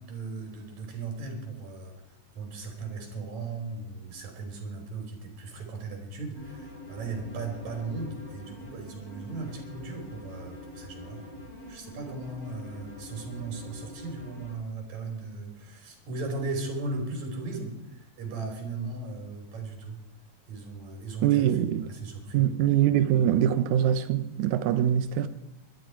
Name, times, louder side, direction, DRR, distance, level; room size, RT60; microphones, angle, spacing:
voice 1, 0.0-2.0 2.3-11.2 11.7-20.0 20.5-22.5, right 3 dB, 55° right, 4.6 m, -37 dB
sound 1, 6.3-14.5, left 1 dB, 45° left, 6.5 m, -45 dB
voice 2, 21.2-21.8 22.3-25.3, right 10 dB, 70° right, 2.1 m, -23 dB
22.0 x 12.5 x 4.6 m
omnidirectional pair, 4.0 m